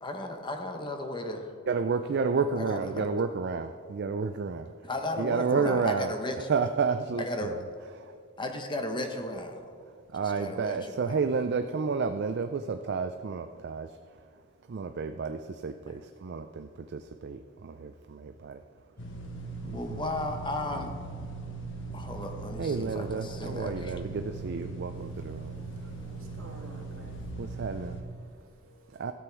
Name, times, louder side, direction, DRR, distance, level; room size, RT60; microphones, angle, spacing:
voice 1, 0.0-1.5 2.6-3.1 4.8-6.5 7.2-7.6 8.4-9.6 10.1-11.2 15.9-16.0 19.7-20.9 21.9-23.9, left 1 dB, 20° left, 5 dB, 0.8 m, -35 dB
voice 2, 1.7-4.7 5.2-6.1 6.5-7.6 10.1-13.9 14.7-18.6 19.6-20.0 22.6-25.6 27.6-27.9 29.0-29.1, right 5 dB, 50° right, 8 dB, 0.4 m, -31 dB
sound 1, 19.0-28.0, right 3 dB, 60° left, 1.1 m, -39 dB
voice 3, 25.5-27.1 28.5-29.1, right 2 dB, 80° right, -1 dB, 2.1 m, -52 dB
13.0 x 8.0 x 4.5 m, 2.2 s
head